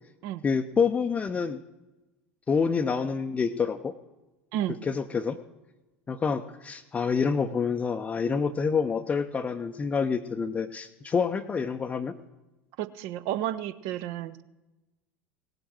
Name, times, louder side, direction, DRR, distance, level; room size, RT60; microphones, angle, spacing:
voice 1, 0.4-1.6 2.5-3.9 4.8-5.4 6.1-12.1, left 5 dB, 20° left, 7 dB, 0.6 m, -27 dB
voice 2, 12.8-14.4, right 12 dB, 50° right, 15 dB, 0.7 m, -32 dB
18.0 x 7.9 x 6.1 m, 1.1 s
figure-of-eight pair, 75°, 6 cm